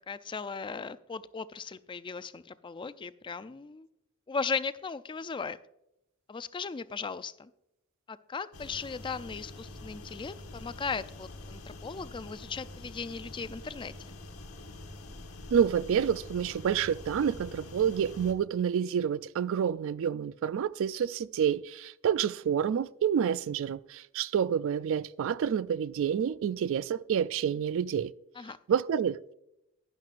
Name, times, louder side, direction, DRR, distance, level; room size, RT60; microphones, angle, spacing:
voice 1, 0.1-3.9 4.3-5.6 6.3-7.5 8.1-13.9 28.4-28.6, left 5 dB, 25° left, 0.4 m, -37 dB
sound 1, 8.5-18.3, left 2 dB, 85° left, 1.3 m, -46 dB
voice 2, 15.5-28.1 28.7-29.3, right 8 dB, 65° right, 0.3 m, -28 dB
11.5 x 10.5 x 2.5 m
head